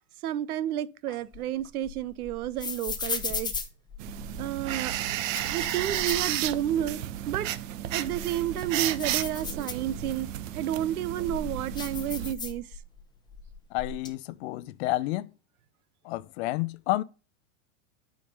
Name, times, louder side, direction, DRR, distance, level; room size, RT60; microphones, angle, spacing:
voice 1, 0.2-3.5 4.4-5.0 5.5-7.5 7.9-10.3 10.5-12.7, right 11 dB, 85° right, 0.9 m, -31 dB
sound 1, 1.1-4.5 5.1-6.9 7.3-7.4 7.9-10.3 10.8-13.0 13.3-14.1, left 5 dB, 10° left, 0.8 m, -37 dB
sound 2, 4.0-12.3, right 12 dB, 60° right, 1.0 m, -33 dB
voice 2, 13.7-15.3 16.0-17.0, left 17 dB, 50° left, 0.6 m, -30 dB
8.4 x 5.1 x 5.4 m
supercardioid pair, 140°, 43 cm